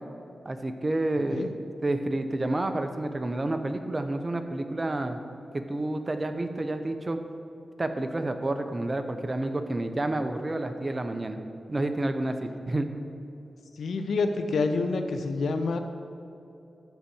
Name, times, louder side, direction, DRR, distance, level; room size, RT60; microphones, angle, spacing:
voice 1, 0.4-1.5 1.8-5.2 5.5-7.2 7.8-11.4 11.7-12.9, right 2 dB, 35° right, 7 dB, 0.9 m, -29 dB
voice 2, 13.7-15.8, left 3 dB, 85° left, 6 dB, 0.8 m, -27 dB
12.5 x 4.2 x 7.9 m, 2.9 s
cardioid pair, 60°, 0 cm